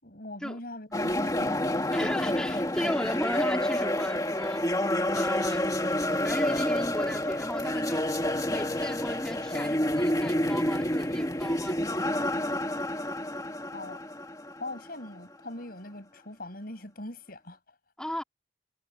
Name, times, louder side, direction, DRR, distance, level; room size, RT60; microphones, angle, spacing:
voice 1, 0.0-2.1 13.7-14.0 14.6-17.6, left 1 dB, 55° left, 6.6 m, -42 dB
sound 1, 0.9-15.0, left 1 dB, 20° left, 2.1 m, -29 dB
voice 2, 1.9-4.7 5.1-5.6 6.2-8.0 8.5-11.8 18.0-18.2, equal, 5° left, 3.6 m, -35 dB
head